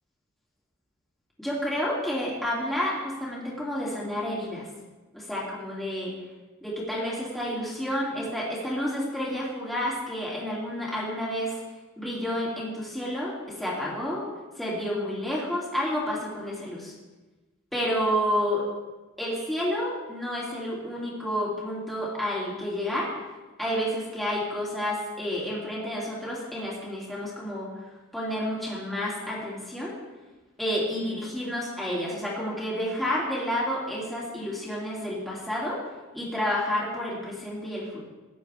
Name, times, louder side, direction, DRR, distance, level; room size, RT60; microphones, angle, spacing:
voice 1, 1.4-4.7 5.1-6.1 6.6-11.6 12.0-14.2 14.6-16.9 17.7-18.6 19.2-23.1 23.6-27.7 28.1-29.9 30.6-35.8 36.1-38.1, equal, ahead, -7 dB, 2.6 m, -30 dB
15.0 x 10.0 x 3.5 m, 1.2 s
head